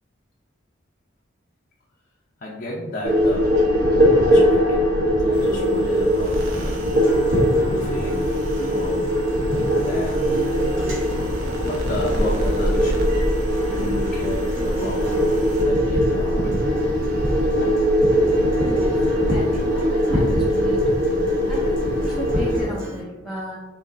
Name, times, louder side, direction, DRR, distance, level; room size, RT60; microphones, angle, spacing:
voice 1, 2.4-3.6 4.2-4.9 5.2-6.8 7.5-8.4 8.6-9.0 9.4-10.3 11.7-13.1 13.6-15.3 15.6-16.7, left 1 dB, 50° left, -4 dB, 0.6 m, -32 dB
sound 1, 3.0-22.6, equal, 55° right, 1.1 m, -20 dB
sound 2, 5.3-15.6, right 3 dB, 85° right, 0.7 m, -37 dB
Acoustic guitar, 7.0-23.0, right 2 dB, 70° right, 1.5 m, -36 dB
voice 2, 8.7-9.0 18.6-21.1 21.5-23.6, right 1 dB, ahead, -7 dB, 0.6 m, -34 dB
5.4 x 2.8 x 2.6 m, 1.2 s
head